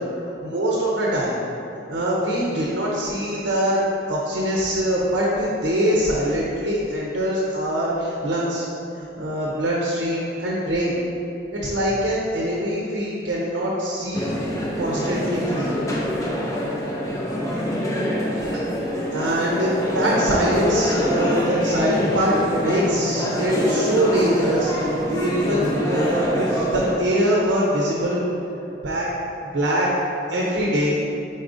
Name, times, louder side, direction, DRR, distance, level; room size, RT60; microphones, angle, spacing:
voice 1, 0.4-1.4 1.9-3.8 4.1-8.6 9.0-11.0 11.5-14.3 14.8-15.7 19.1-28.2 28.8-29.1 29.5-29.9 30.3-31.0, equal, 70° right, -4 dB, 0.6 m, -23 dB
sound 1, 14.1-26.9, equal, 15° left, 0.5 m, -25 dB
4.9 x 4.0 x 2.6 m, 2.8 s
head